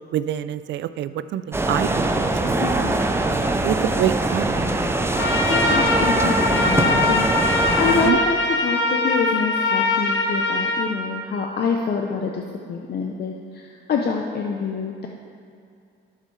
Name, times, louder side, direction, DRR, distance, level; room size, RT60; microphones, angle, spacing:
voice 1, 0.1-2.9 3.6-4.8 8.1-8.2, right 11 dB, 70° right, 13 dB, 0.4 m, -26 dB
sound 1, 1.5-8.1, right 2 dB, 10° right, 0.6 m, -22 dB
voice 2, 2.6-3.1 5.5-15.1, left 5 dB, 55° left, 2 dB, 0.7 m, -26 dB
Trumpet, 5.1-10.8, left 2 dB, 70° left, 1.2 m, -22 dB
11.5 x 6.6 x 3.2 m, 2.4 s
cardioid pair, 90°, 20 cm